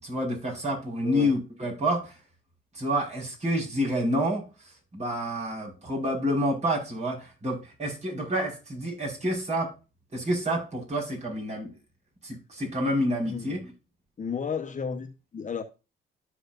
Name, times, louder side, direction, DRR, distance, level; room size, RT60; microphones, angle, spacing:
voice 1, 0.0-2.2 2.7-9.7 10.1-11.7 12.2-13.7, equal, 35° right, 5.2 m, -28 dB
voice 2, 1.0-1.3 13.2-13.6 14.2-15.6, left 6 dB, 40° left, 1.1 m, -33 dB
13.0 x 4.9 x 2.6 m
cardioid pair, 90°, 20 cm